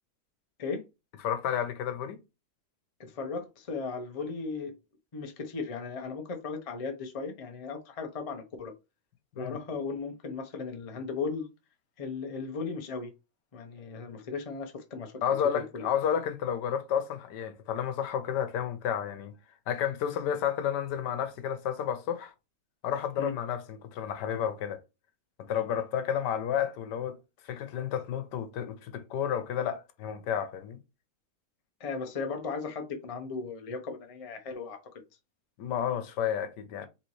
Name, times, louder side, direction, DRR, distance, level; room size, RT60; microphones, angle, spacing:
voice 1, 1.2-2.2 9.4-9.6 15.2-19.3 19.7-22.3 22.8-24.8 25.4-27.2 27.4-30.8 35.6-36.9, left 9 dB, 85° left, 1.3 m, -31 dB
voice 2, 3.0-4.8 5.1-8.7 9.4-11.5 12.0-13.1 13.5-15.1 15.5-15.9 23.2-23.3 31.8-34.8, left 4 dB, 35° left, 0.5 m, -36 dB
4.1 x 3.4 x 3.1 m
omnidirectional pair, 1.8 m